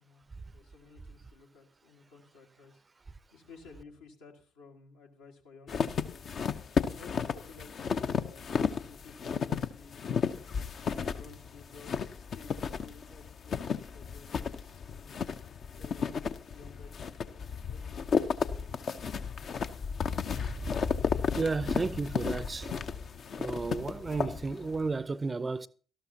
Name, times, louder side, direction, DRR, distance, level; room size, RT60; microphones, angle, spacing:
voice 1, 0.0-3.0 3.3-6.2 6.8-10.5 11.1-15.2 15.7-18.6, left 4 dB, 75° left, 1.8 m, -55 dB
sound 1, 5.7-24.9, left 6 dB, 50° left, 0.7 m, -33 dB
voice 2, 21.3-22.7 23.4-25.7, right 4 dB, 30° right, 0.6 m, -33 dB
18.0 x 13.0 x 2.8 m
figure-of-eight pair, 45°, 0 cm